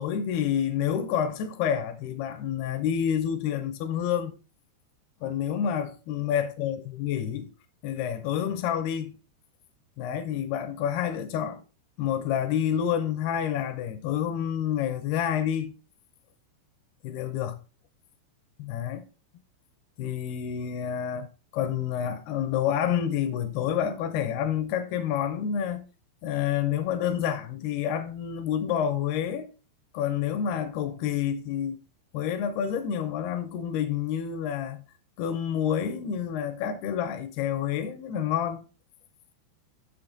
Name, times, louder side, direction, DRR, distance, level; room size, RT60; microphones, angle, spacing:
voice 1, 0.0-4.3 5.2-7.5 7.8-9.2 10.0-11.6 12.0-15.7 17.0-17.6 18.6-19.0 20.0-21.3 21.5-25.8 26.2-29.5 29.9-31.8 32.1-34.8 35.2-38.6, left 9 dB, 80° left, 2.3 m, -28 dB
7.5 x 6.7 x 3.8 m
omnidirectional pair, 5.3 m